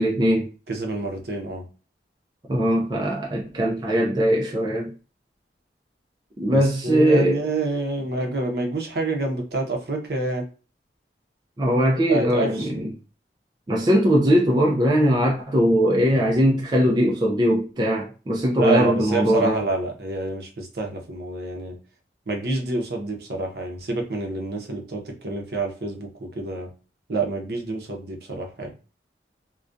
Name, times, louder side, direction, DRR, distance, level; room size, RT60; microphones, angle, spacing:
voice 1, 0.0-0.5 2.5-5.0 6.4-7.4 11.6-12.9 13.7-19.6, equal, 25° right, 0.4 m, -20 dB
voice 2, 0.7-1.6 6.5-10.4 12.1-12.7 18.6-21.8 22.3-26.7 27.1-28.7, right 2 dB, 65° right, 0.6 m, -28 dB
2.3 x 2.1 x 2.5 m
head